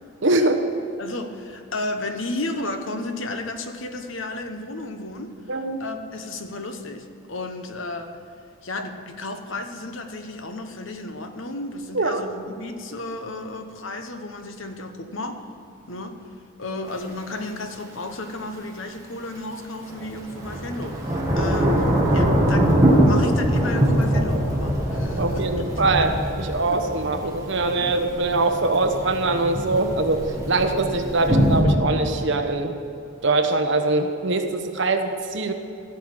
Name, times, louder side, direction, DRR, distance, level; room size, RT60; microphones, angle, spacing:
voice 1, 0.2-0.6 5.5-5.8 11.9-12.2 25.2-26.1 26.5-30.2 30.5-32.7 33.2-35.5, right 2 dB, 55° right, 5 dB, 1.0 m, -22 dB
voice 2, 1.0-8.2 8.6-15.5 15.9-16.2 16.6-21.8 22.1-25.7 26.7-26.8 27.8-27.9, left 2 dB, 65° left, 6 dB, 1.1 m, -33 dB
Thunder / Rain, 16.9-17.0 19.9-31.6, equal, 15° right, 1.8 m, -23 dB
15.5 x 6.5 x 7.7 m, 2.6 s
head